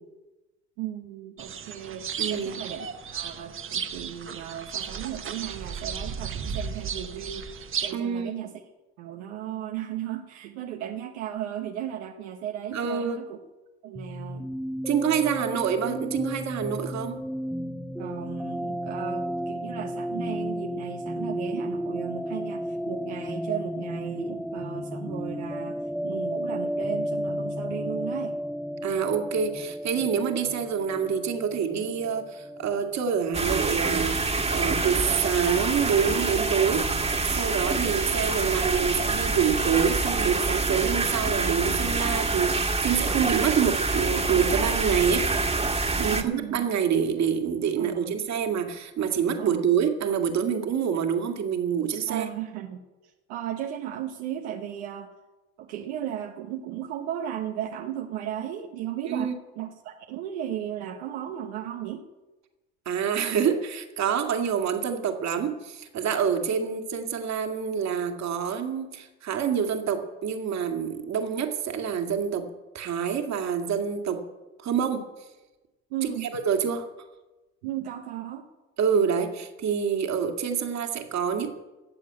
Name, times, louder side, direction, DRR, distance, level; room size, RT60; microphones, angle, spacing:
voice 1, 0.8-8.5 9.0-13.4 13.8-14.5 18.0-28.4 37.9-38.0 43.2-43.5 46.0-46.7 47.8-48.2 49.4-49.7 52.1-55.1 55.6-62.1 75.9-76.3 77.6-78.5, right 10 dB, 85° right, 3 dB, 1.1 m, -35 dB
sound 1, 1.4-7.9, right 7 dB, 40° right, 1.2 m, -34 dB
voice 2, 2.2-2.6 7.9-8.4 12.7-13.2 14.9-17.2 28.8-36.9 37.3-45.3 46.0-52.3 59.0-59.4 62.9-72.5 72.7-74.2 74.6-75.1 76.0-76.9 78.8-81.5, right 7 dB, 55° right, 5 dB, 2.2 m, -27 dB
MH-Arp(String), 13.9-33.5, equal, ahead, 0.7 m, -33 dB
sound 2, 33.3-46.2, right 3 dB, 20° right, 1.7 m, -26 dB
15.0 x 7.5 x 8.7 m, 1.1 s
supercardioid pair, 75°, 33 cm